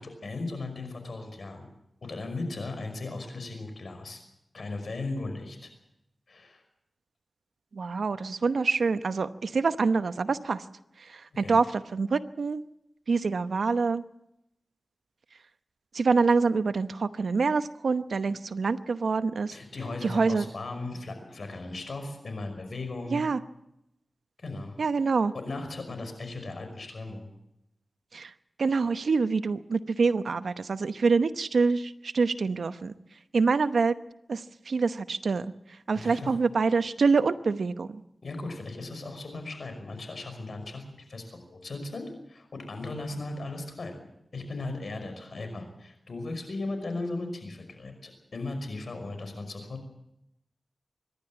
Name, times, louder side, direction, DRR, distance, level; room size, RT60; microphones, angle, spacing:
voice 1, 0.0-1.7 2.0-4.2 4.5-5.7 6.3-6.6 11.4-11.6 19.5-23.2 24.4-24.8 25.3-27.3 35.9-36.3 38.2-40.8 41.1-44.1 44.3-49.9, left 2 dB, 75° left, 6 dB, 5.5 m, -37 dB
voice 2, 7.7-10.6 11.0-12.6 13.1-14.0 15.9-19.6 20.0-20.5 23.1-23.4 24.8-25.3 28.1-28.3 28.6-32.9 33.3-33.9 34.3-35.5 35.9-38.0, right 4 dB, 85° right, 12 dB, 0.9 m, -26 dB
25.5 x 12.0 x 8.9 m, 0.84 s
cardioid pair, 50°, 0 cm